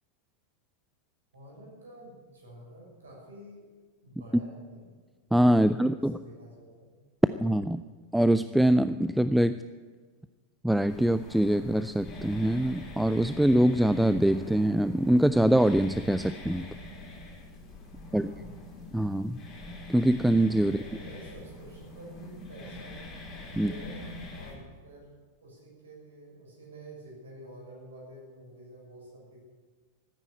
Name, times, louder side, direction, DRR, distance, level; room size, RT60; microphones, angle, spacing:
voice 1, 1.3-3.7 4.0-4.9 5.5-6.9 18.0-18.6 20.6-23.0 23.5-25.1 25.4-29.4, right 1 dB, 70° right, -2 dB, 6.4 m, -49 dB
voice 2, 5.3-6.1 7.4-7.8 8.1-9.6 10.6-16.7 18.1-18.3 18.9-19.4 19.9-20.8 23.6-23.7, right 1 dB, 5° right, 13 dB, 0.3 m, -24 dB
sound 1, 10.9-24.6, left 1 dB, 25° left, 5.4 m, -44 dB
14.5 x 9.5 x 8.7 m, 1.4 s
figure-of-eight pair, 90°, 0 cm